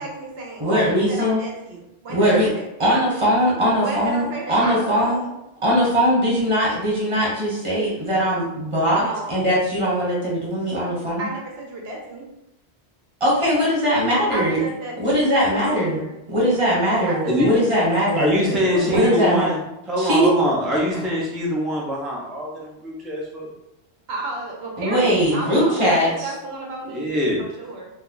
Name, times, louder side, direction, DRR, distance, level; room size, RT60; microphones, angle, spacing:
voice 1, 0.0-2.6 3.8-5.4 8.9-9.3 11.2-12.2 14.3-16.1 17.0-17.7 18.1-19.5 24.1-27.9, right 2 dB, 70° right, -1 dB, 0.9 m, -32 dB
voice 2, 0.6-1.4 2.1-2.5 2.8-5.2 5.6-11.3 13.2-14.6 15.0-16.0 16.3-18.3 18.9-19.5 20.0-20.3 24.8-26.3, equal, 30° right, -6 dB, 1.2 m, -20 dB
voice 3, 18.2-19.6 19.9-23.5 26.9-27.4, equal, ahead, -4 dB, 0.4 m, -23 dB
2.7 x 2.2 x 3.8 m, 0.88 s
omnidirectional pair, 1.1 m